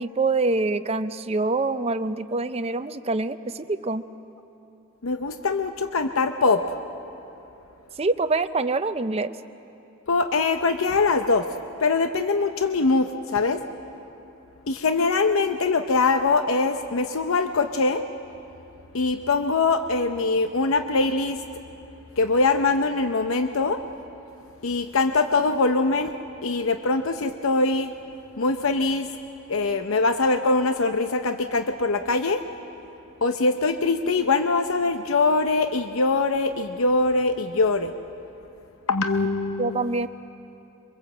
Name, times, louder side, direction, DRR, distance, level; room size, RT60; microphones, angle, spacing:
voice 1, 0.0-4.1 8.0-9.4 39.6-40.1, right 3 dB, 30° right, 11 dB, 0.6 m, -25 dB
voice 2, 5.0-6.8 10.1-11.5 11.8-13.6 14.7-18.0 18.9-21.4 22.2-23.8 24.6-26.1 26.4-27.9 28.4-29.1 29.5-32.4 33.2-37.9 38.9-40.0, left 3 dB, 75° left, 8 dB, 0.7 m, -23 dB
24.0 x 22.0 x 7.7 m, 2.8 s
head